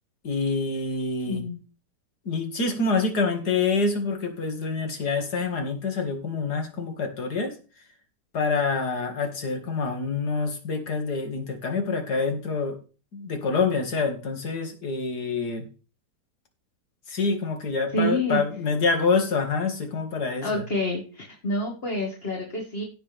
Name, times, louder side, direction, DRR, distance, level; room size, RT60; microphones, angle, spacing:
voice 1, 0.2-1.4 2.3-7.6 8.3-12.8 13.1-15.7 17.1-20.6, left 4 dB, 65° left, 4 dB, 2.7 m, -26 dB
voice 2, 1.3-1.6 17.1-17.2 17.9-18.4 20.4-22.8, left 1 dB, 35° left, 0 dB, 2.3 m, -28 dB
16.5 x 6.5 x 3.5 m, 0.35 s
omnidirectional pair, 1.8 m